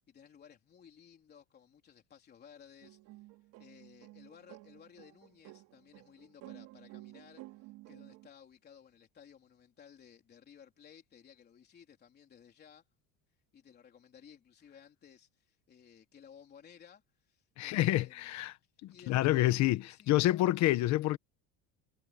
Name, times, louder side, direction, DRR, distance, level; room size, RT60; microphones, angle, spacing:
voice 1, 0.1-3.3 3.6-12.8 13.5-18.2 18.6-20.4 20.6-20.8, left 8 dB, 25° left, 3.7 m, -58 dB
sound 1, 2.8-8.3, right 19 dB, 55° right, 3.3 m, -53 dB
voice 2, 17.6-18.5 18.8-21.2, left 16 dB, 45° left, 1.1 m, -28 dB
cardioid pair, 180°, 40 cm